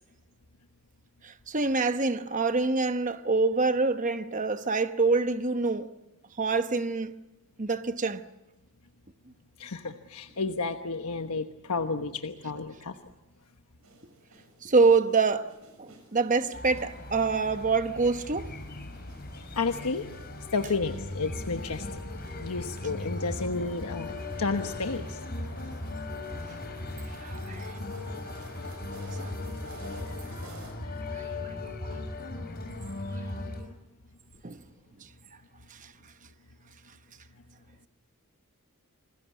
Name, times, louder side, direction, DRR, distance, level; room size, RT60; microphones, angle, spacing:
voice 1, 1.2-5.9 6.4-7.1 7.6-8.2 14.6-15.5 15.8-18.5 26.3-26.4 27.2-27.8 29.1-29.3 34.4-34.6 35.7-35.9, right 4 dB, 35° right, 0.9 m, -26 dB
voice 2, 9.6-13.0 19.5-20.1 20.5-21.9 22.4-24.1 24.4-25.2 29.8-30.5 30.8-31.3 31.9-32.0, left 4 dB, 85° left, 1.2 m, -32 dB
sound 1, 13.8-30.7, right 2 dB, 70° right, 7.0 m, -54 dB
sound 2, 16.5-33.6, left 2 dB, 45° left, 5.3 m, -38 dB
28.5 x 20.5 x 8.4 m
head